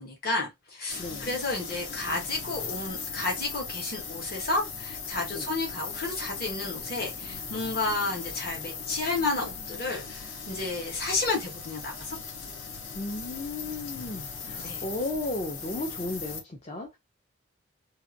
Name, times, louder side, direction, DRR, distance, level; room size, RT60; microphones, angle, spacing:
voice 1, 0.0-12.2 14.6-14.8, left 3 dB, 50° left, 1.2 m, -31 dB
sound 1, 0.9-16.4, left 5 dB, 80° left, 0.7 m, -38 dB
voice 2, 12.9-17.0, left 2 dB, 30° left, 0.5 m, -34 dB
2.7 x 2.5 x 2.5 m
head